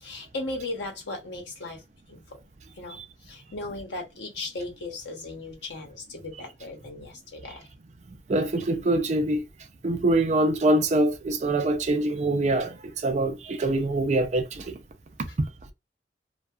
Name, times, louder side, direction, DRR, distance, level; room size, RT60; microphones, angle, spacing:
voice 1, 0.0-2.4 2.7-7.7 15.3-15.4, left 2 dB, 85° left, 0.9 m, -37 dB
voice 2, 8.3-9.4 9.8-14.8, right 2 dB, 40° right, 0.4 m, -24 dB
2.6 x 2.3 x 2.3 m
head